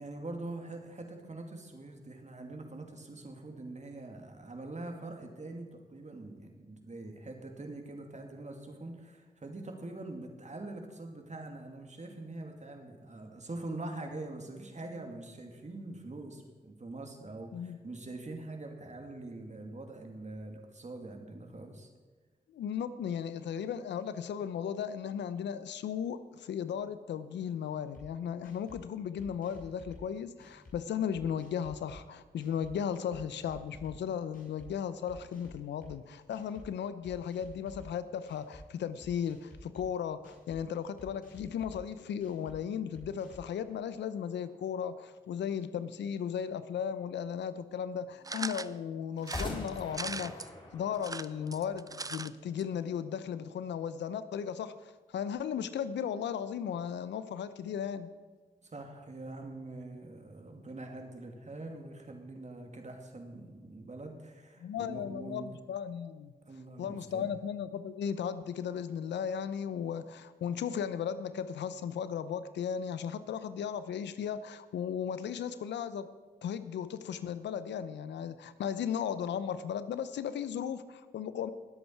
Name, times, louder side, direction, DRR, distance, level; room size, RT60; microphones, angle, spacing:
voice 1, 0.0-21.9 58.6-65.5 66.5-67.3, right 2 dB, 40° right, 3 dB, 2.6 m, -44 dB
voice 2, 17.5-17.8 22.5-58.1 64.6-66.3 66.8-76.1 76.4-81.5, left 8 dB, 85° left, 14 dB, 0.7 m, -36 dB
sound 1, 27.9-28.1 28.4-28.8 29.2-30.0 30.4-30.8 31.1-32.0 32.4-32.7 33.1-34.0 34.3-34.7 35.1-35.9 36.3-36.7 37.0-37.9 38.3-38.6 39.0-39.9 40.2-40.6 41.0-41.8 42.2-42.6 42.9-43.5, left 1 dB, 50° left, 4.4 m, -51 dB
sound 2, 43.3-45.1 49.2-52.3, left 2 dB, 25° left, 3.9 m, -44 dB
sound 3, 48.2-48.7 49.2-50.5 50.9-52.3 52.6-52.7 52.9-53.0, right 3 dB, 20° right, 0.5 m, -39 dB
20.5 x 8.1 x 4.7 m, 1.3 s
supercardioid pair, 40°, 18 cm